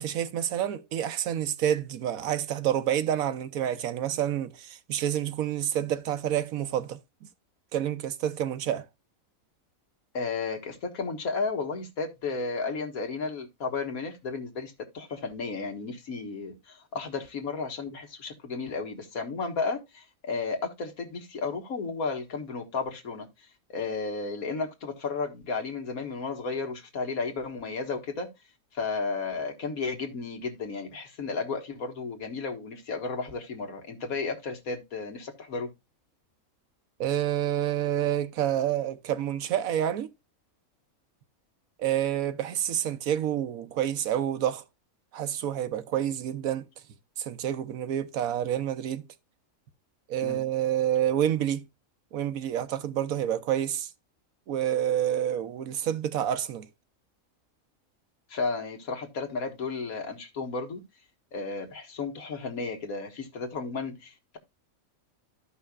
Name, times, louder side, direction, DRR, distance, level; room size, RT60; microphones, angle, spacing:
voice 1, 0.0-7.0 7.7-8.9 37.0-40.1 41.8-44.6 45.1-46.6 47.2-49.1 50.1-51.7 52.1-53.9 54.5-56.7, right 10 dB, 75° right, 1.2 m, -28 dB
voice 2, 10.1-23.3 23.7-28.3 28.7-35.7 50.2-50.4 58.3-60.8 61.3-64.4, left 4 dB, 75° left, 1.9 m, -33 dB
13.5 x 5.6 x 2.3 m
omnidirectional pair, 1.5 m